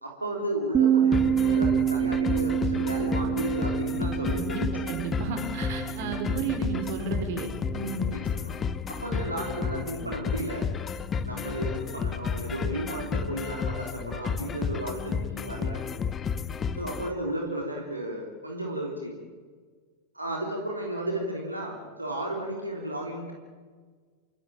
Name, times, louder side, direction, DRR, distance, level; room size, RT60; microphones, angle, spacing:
voice 1, 0.0-5.0 8.1-8.5 8.9-10.7 11.2-15.8 16.7-19.2 20.1-23.3, right 1 dB, 85° right, 0 dB, 3.4 m, -33 dB
Bass guitar, 0.7-7.0, right 9 dB, 25° right, 0.8 m, -27 dB
sound 1, 1.1-17.1, left 6 dB, 20° left, 1.1 m, -32 dB
voice 2, 4.3-8.1, right 4 dB, 50° right, 5 dB, 4.9 m, -33 dB
28.0 x 15.5 x 8.9 m, 1.5 s
figure-of-eight pair, 90°, 0 cm